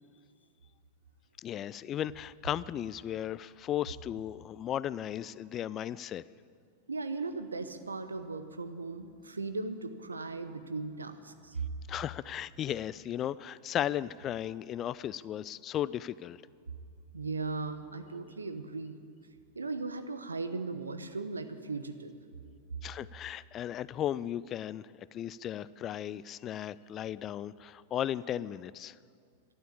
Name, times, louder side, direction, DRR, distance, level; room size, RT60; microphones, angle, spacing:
voice 1, 1.4-6.2 11.9-16.4 22.8-29.0, left 11 dB, 30° left, 19 dB, 0.3 m, -36 dB
voice 2, 6.9-11.7 17.1-19.0 19.5-22.1, right 3 dB, 75° right, 10 dB, 0.9 m, -37 dB
12.5 x 11.0 x 8.6 m, 2.3 s
figure-of-eight pair, 90°, 0 cm